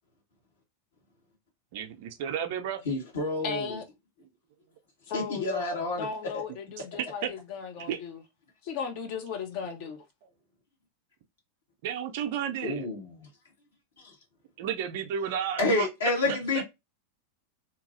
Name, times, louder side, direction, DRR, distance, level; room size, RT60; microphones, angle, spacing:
voice 1, 1.7-2.8 7.2-7.3 7.9-8.0 11.8-12.9 14.6-15.9, right 8 dB, 50° right, 0.5 m, -32 dB
voice 2, 2.8-3.8 5.1-6.1 6.3-6.4 12.6-13.2 14.0-14.1 15.6-16.6, left 2 dB, 65° left, 1.4 m, -29 dB
voice 3, 3.4-3.8 5.1-8.2 8.6-10.0, left 6 dB, 45° left, 0.6 m, -36 dB
2.8 x 2.6 x 2.5 m
figure-of-eight pair, 90°, 0 cm